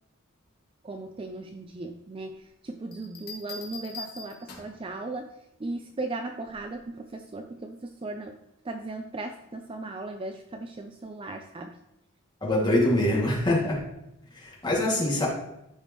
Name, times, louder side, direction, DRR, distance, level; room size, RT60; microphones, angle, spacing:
voice 1, 0.8-5.3 5.6-8.4 8.6-11.8, right 2 dB, 25° right, 6 dB, 0.4 m, -37 dB
sound 1, 2.9-4.9 6.5-6.8, left 4 dB, 45° left, 1.8 m, -42 dB
voice 2, 12.4-13.8 14.3-15.3, left 1 dB, 20° left, -4 dB, 2.2 m, -24 dB
13.5 x 5.0 x 3.0 m, 0.86 s
head